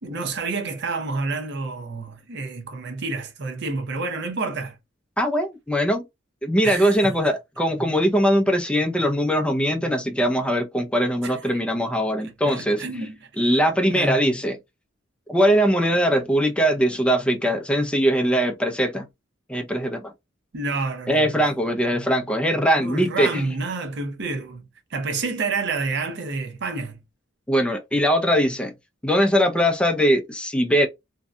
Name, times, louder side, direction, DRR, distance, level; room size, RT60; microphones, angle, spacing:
voice 1, 0.0-4.7 6.6-7.1 11.2-11.6 12.2-13.3 13.9-14.2 20.5-21.4 22.8-24.6 24.9-27.0, right 3 dB, 60° right, 0.6 m, -29 dB
voice 2, 5.2-6.0 6.4-12.8 13.4-14.6 15.3-19.1 19.5-20.1 21.1-23.4 27.5-28.7 29.0-30.9, equal, 5° left, 0.4 m, -21 dB
2.6 x 2.2 x 2.4 m
head